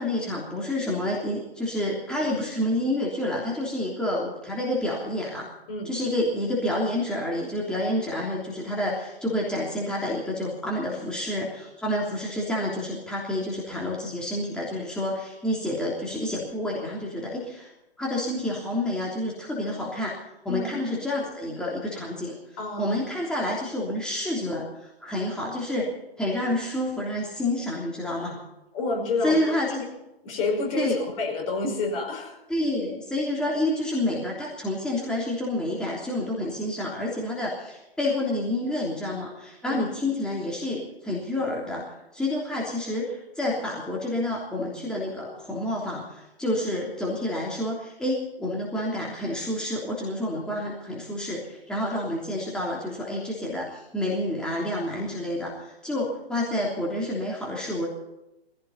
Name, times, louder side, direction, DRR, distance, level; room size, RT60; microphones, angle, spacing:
voice 1, 0.0-5.5 5.8-17.7 18.0-20.2 20.4-22.4 22.8-25.9 26.2-28.4 29.2-29.9 30.8-31.0 32.5-41.9 42.1-57.9, left 1 dB, 5° left, -4 dB, 3.2 m, -29 dB
voice 2, 22.6-23.0 28.7-29.6 30.2-32.4 39.7-39.9, left 3 dB, 35° left, 1 dB, 5.3 m, -29 dB
21.0 x 16.5 x 4.1 m, 0.93 s
figure-of-eight pair, 135°, 30 cm